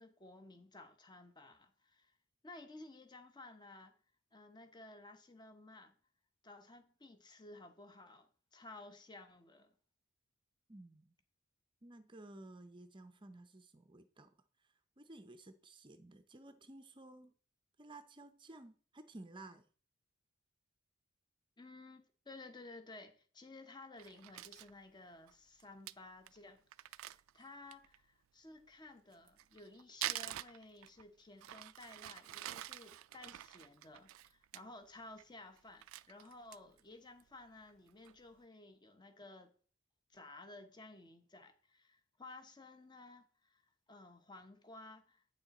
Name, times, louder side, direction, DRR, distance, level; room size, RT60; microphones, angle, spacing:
voice 1, 0.0-2.1 2.4-3.9 4.3-5.9 6.4-9.7 21.6-39.5 40.1-43.6 43.9-45.3, left 2 dB, 20° left, 0.9 m, -55 dB
voice 2, 10.7-11.1 11.8-14.3 15.0-17.3 17.8-19.6, right 2 dB, 25° right, 0.6 m, -54 dB
Crumpling crinkling, 24.0-24.7 25.3-25.4 25.6-25.7 25.9-26.0 26.3-26.4 26.7-28.0 29.1-31.1 31.4-34.6 35.0-35.3 35.6-36.8 37.2-37.3 37.7-38.1, right 14 dB, 70° right, 0.3 m, -46 dB
9.1 x 6.3 x 4.1 m
head